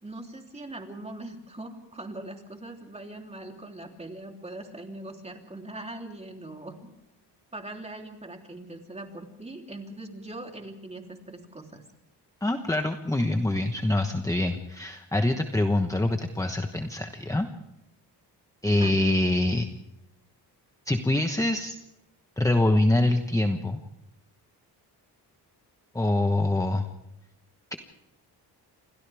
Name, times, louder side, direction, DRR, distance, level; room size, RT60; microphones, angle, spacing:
voice 1, 0.0-6.8 7.5-11.8 18.6-19.0, right 2 dB, 15° right, 2 dB, 3.3 m, -41 dB
voice 2, 12.4-17.5 18.6-19.7 20.9-21.7 22.4-23.8 25.9-26.9, left 1 dB, 10° left, 6 dB, 1.1 m, -25 dB
29.0 x 25.0 x 3.5 m, 0.92 s
cardioid pair, 120°, 41 cm